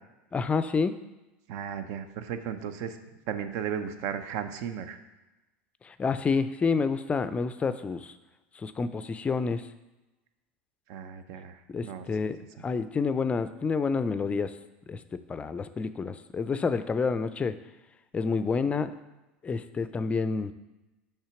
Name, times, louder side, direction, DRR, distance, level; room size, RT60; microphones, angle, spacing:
voice 1, 0.3-0.9 5.8-8.2 8.6-9.6 11.7-14.5 14.9-17.6 18.1-18.9 19.4-20.5, left 5 dB, 20° left, 12 dB, 0.4 m, -29 dB
voice 2, 1.5-3.0 3.3-5.0 10.9-12.0, right 8 dB, 60° right, 10 dB, 0.6 m, -35 dB
5.6 x 3.5 x 5.8 m, 1.0 s
hypercardioid pair, 95°, 6 cm